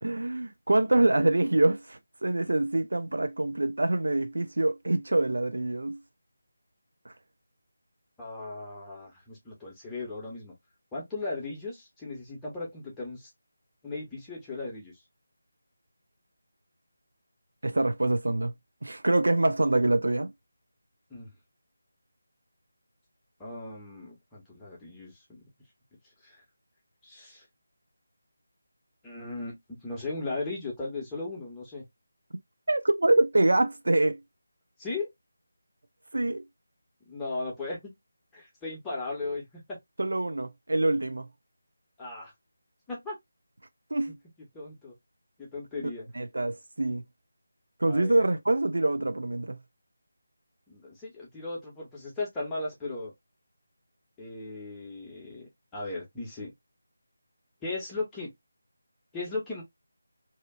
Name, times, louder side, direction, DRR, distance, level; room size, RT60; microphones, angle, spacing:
voice 1, 0.0-6.0 7.1-7.2 17.6-18.5 18.8-20.3 32.7-34.2 36.1-36.4 40.0-41.3 43.9-44.1 46.2-47.0 47.8-49.6, right 2 dB, 60° right, 0.3 m, -25 dB
voice 2, 8.2-10.5 10.9-13.3 13.8-14.9 21.1-21.3 23.4-25.4 26.2-26.4 27.0-27.4 29.0-31.8 34.8-35.1 37.1-37.9 38.3-39.8 42.0-42.3 42.9-43.2 44.4-44.9 45.4-46.1 47.8-48.2 50.7-53.1 54.2-56.5 57.6-58.3 59.1-59.6, left 3 dB, 5° left, 0.9 m, -37 dB
2.7 x 2.4 x 2.3 m
figure-of-eight pair, 160°, 0 cm